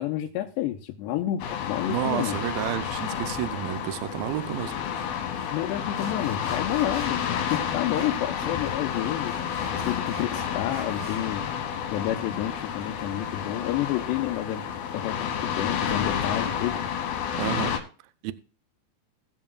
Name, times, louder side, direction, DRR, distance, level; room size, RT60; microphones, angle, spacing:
voice 1, 0.0-2.4 5.5-9.4 9.7-11.4 11.9-14.6 14.9-16.8, left 12 dB, 90° left, 2.9 m, -30 dB
sound 1, 1.4-17.8, left 8 dB, 70° left, 2.9 m, -30 dB
voice 2, 1.9-4.8 17.4-17.8 18.2-18.3, right 14 dB, 85° right, 2.1 m, -30 dB
Sawing, 4.9-5.0 5.4-5.5 6.0-8.2 8.4-11.3, right 3 dB, 60° right, 4.4 m, -45 dB
19.0 x 7.4 x 2.3 m
omnidirectional pair, 4.8 m